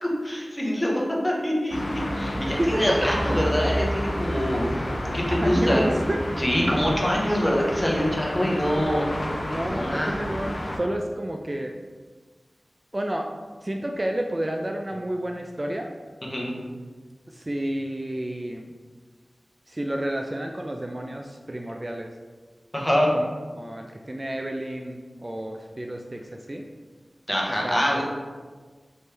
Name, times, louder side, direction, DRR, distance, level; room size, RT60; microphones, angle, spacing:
voice 1, 0.0-1.8 2.1-5.8 6.4-9.1 9.8-10.1 16.3-16.5 22.7-23.1 27.3-28.0, equal, 15° left, -3 dB, 1.0 m, -24 dB
sound 1, 1.7-10.8, equal, 55° left, 0.7 m, -30 dB
voice 2, 5.4-6.2 9.5-11.8 12.9-13.3 13.6-15.9 17.3-18.7 19.7-22.1 23.1-23.2 23.5-26.2 26.5-26.7 27.6-28.0, right 1 dB, 30° right, 2 dB, 0.3 m, -30 dB
4.3 x 3.1 x 3.3 m, 1.4 s
wide cardioid pair, 55°, 0 cm